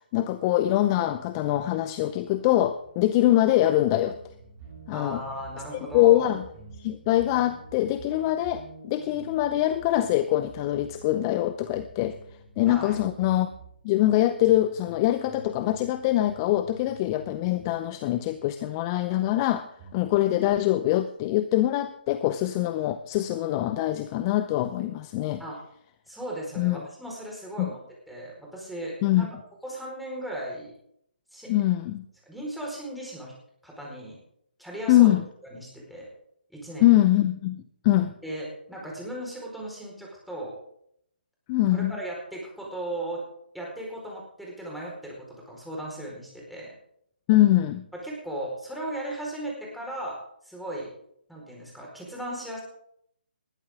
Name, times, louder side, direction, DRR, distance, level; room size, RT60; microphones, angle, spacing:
voice 1, 0.0-4.2 4.9-5.2 5.9-6.4 6.8-12.2 12.6-13.5 13.8-19.7 19.9-25.4 26.6-26.8 27.6-27.7 29.0-29.3 31.5-32.0 34.9-35.2 36.8-38.1 41.5-41.9 47.3-47.9, left 14 dB, 25° left, 12 dB, 0.7 m, -23 dB
sound 1, 1.9-20.3, right 4 dB, 25° right, 7.1 m, -50 dB
voice 2, 4.9-6.3 12.7-12.9 25.4-25.6 26.1-29.4 29.6-30.7 31.3-31.5 32.3-33.3 33.6-34.2 34.6-35.1 35.4-36.1 36.5-37.0 38.2-40.5 41.7-43.2 43.5-46.7 47.9-50.9 51.3-52.6, right 1 dB, ahead, -3 dB, 4.6 m, -37 dB
20.0 x 13.0 x 3.7 m, 0.71 s
figure-of-eight pair, 140°, 6 cm